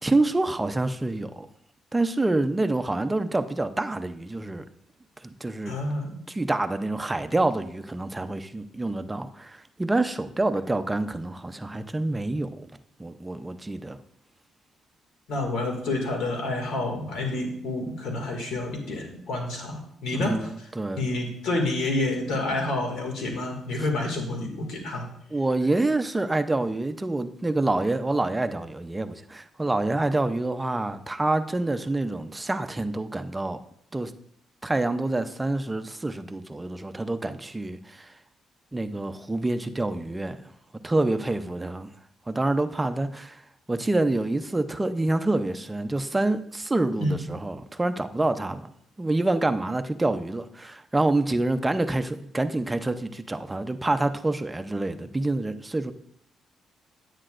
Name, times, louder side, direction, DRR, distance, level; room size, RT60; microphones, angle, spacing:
voice 1, 0.0-1.5 1.9-4.6 5.2-5.8 6.3-12.7 13.0-14.0 20.1-21.2 25.3-33.6 33.9-34.1 34.6-38.1 38.7-40.5 40.8-41.9 42.3-48.7 49.0-55.9, right 2 dB, 15° right, 0.6 m, -27 dB
voice 2, 5.7-6.2 15.3-20.7 20.9-25.1 47.0-47.3, left 2 dB, 80° left, 2.1 m, -29 dB
9.8 x 8.8 x 2.5 m
cardioid pair, 90°, 0 cm